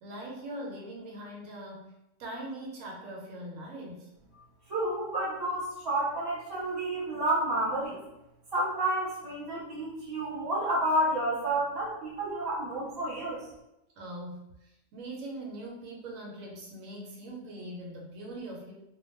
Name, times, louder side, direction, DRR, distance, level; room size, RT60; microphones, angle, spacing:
voice 1, 0.0-4.1 14.0-18.7, right 1 dB, 80° right, -1 dB, 1.0 m, -41 dB
voice 2, 4.7-8.0 8.5-13.4, right 1 dB, 20° right, -7 dB, 0.9 m, -30 dB
2.3 x 2.1 x 3.0 m, 0.88 s
omnidirectional pair, 1.4 m